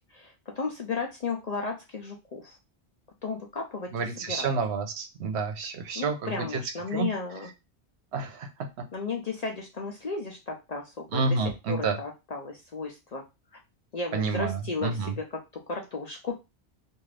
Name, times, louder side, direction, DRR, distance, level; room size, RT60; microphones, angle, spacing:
voice 1, 0.1-2.6 3.2-3.9 4.2-4.5 5.9-7.5 8.9-11.2 11.7-13.2 13.9-15.4 15.7-16.4, left 4 dB, 50° left, 2 dB, 0.5 m, -34 dB
voice 2, 3.9-6.6 6.9-7.1 8.1-8.8 11.1-12.0 14.1-15.2, right 4 dB, 75° right, 6 dB, 0.9 m, -29 dB
2.6 x 2.5 x 3.2 m, 0.25 s
omnidirectional pair, 1.1 m